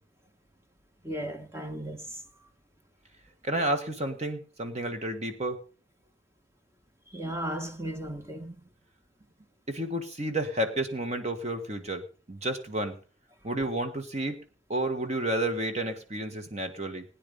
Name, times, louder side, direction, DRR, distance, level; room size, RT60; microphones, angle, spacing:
voice 1, 1.0-2.0 7.1-8.6, right 1 dB, 15° right, 1.2 m, -35 dB
voice 2, 3.4-5.6 9.7-12.0 12.3-13.0 13.4-14.4 14.7-17.0, right 1 dB, 35° right, 1.5 m, -31 dB
17.5 x 9.8 x 5.4 m
head